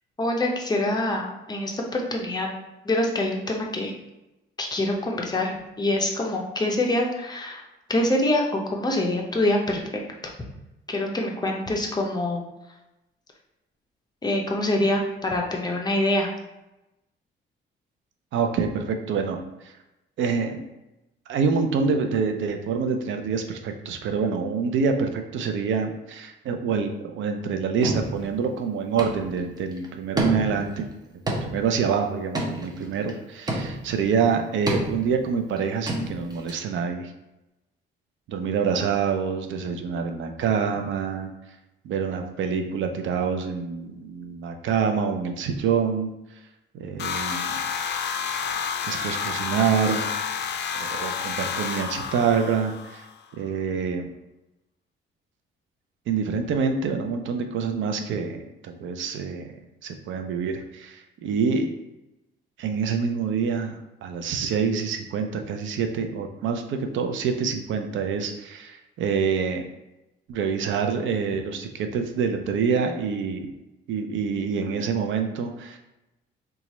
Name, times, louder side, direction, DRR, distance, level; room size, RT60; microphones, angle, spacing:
voice 1, 0.2-2.5 2.8-3.9 4.6-7.6 7.9-9.8 10.9-12.4 14.2-16.3, left 1 dB, 20° left, 0 dB, 0.7 m, -25 dB
voice 2, 18.3-19.7 20.2-20.7 21.3-30.9 31.3-37.1 38.3-41.3 41.8-46.1 46.7-47.6 48.8-50.1 50.8-53.0 53.4-54.1 56.1-59.5 59.8-61.7 62.6-69.6 70.3-73.5 73.9-75.8, right 6 dB, 75° right, 6 dB, 0.5 m, -26 dB
sound 1, 27.8-28.4 29.0-29.4 29.7-29.9 30.2-30.8 31.3-31.8 32.3-33.1 33.5-34.0 34.7-35.2 35.6-35.7 35.9-36.5, right 1 dB, 20° right, 0.6 m, -29 dB
sound 2, 47.0-53.1, left 6 dB, 60° left, 0.4 m, -30 dB
3.0 x 2.4 x 4.1 m, 0.95 s
cardioid pair, 90°, 20 cm